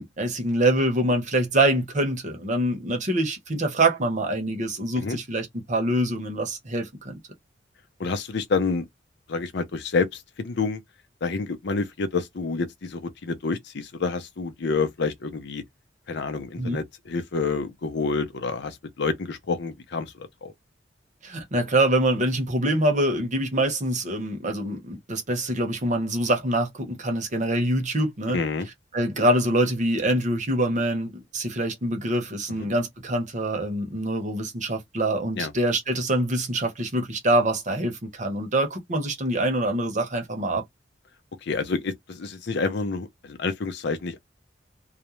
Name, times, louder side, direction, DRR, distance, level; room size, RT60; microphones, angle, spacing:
voice 1, 0.0-7.2 16.6-16.8 21.2-28.4 28.9-40.6, right 1 dB, 40° right, 0.8 m, -25 dB
voice 2, 8.0-8.8 9.3-10.8 11.2-15.6 16.1-20.5 28.3-28.7 32.5-32.7 35.4-35.5 41.4-44.2, left 4 dB, 65° left, 0.6 m, -28 dB
2.4 x 2.1 x 2.9 m
head